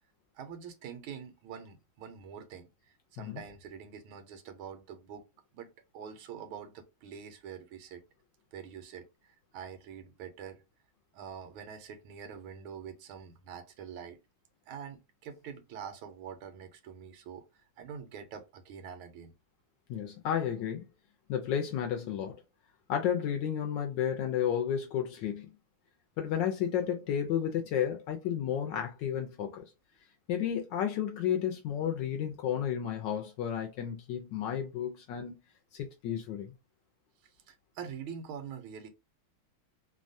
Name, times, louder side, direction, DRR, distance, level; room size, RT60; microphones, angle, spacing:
voice 1, 0.3-5.2 5.5-8.0 8.5-10.6 11.1-14.2 14.7-19.3 37.5-38.9, right 7 dB, 80° right, 1.4 m, -45 dB
voice 2, 19.9-20.9 21.3-22.3 22.9-25.5 26.2-29.6 30.3-35.3 35.7-36.5, left 9 dB, 75° left, 1.1 m, -32 dB
3.3 x 2.2 x 2.5 m
omnidirectional pair, 2.3 m